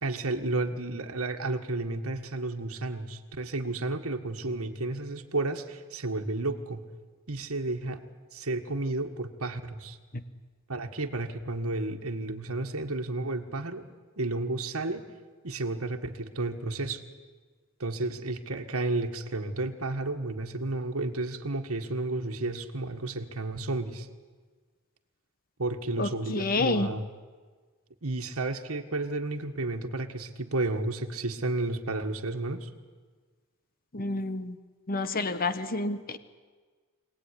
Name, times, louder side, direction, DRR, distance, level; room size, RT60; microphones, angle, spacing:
voice 1, 0.0-6.9 7.3-8.0 8.3-10.0 10.7-13.9 14.2-15.0 15.4-17.0 17.8-24.1 25.6-27.1 28.0-32.7, right 2 dB, 75° right, 3 dB, 1.7 m, -32 dB
voice 2, 26.0-26.9 33.9-34.6 34.9-36.2, left 3 dB, 40° left, 12 dB, 1.2 m, -29 dB
25.0 x 18.0 x 10.0 m, 1.5 s
head